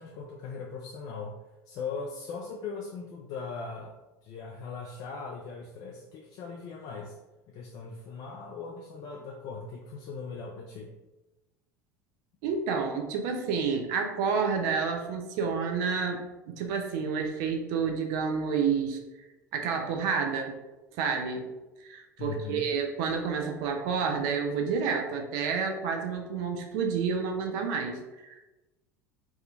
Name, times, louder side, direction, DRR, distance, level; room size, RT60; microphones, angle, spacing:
voice 1, 0.0-1.4 1.7-7.2 7.5-10.9 22.2-22.7, left 4 dB, 45° left, 0 dB, 0.3 m, -39 dB
voice 2, 12.4-16.2 16.5-19.0 19.5-20.6 21.0-21.5 21.8-28.4, right 5 dB, 60° right, 3 dB, 0.5 m, -29 dB
2.7 x 2.4 x 2.3 m, 1.1 s
hypercardioid pair, 75°, 10 cm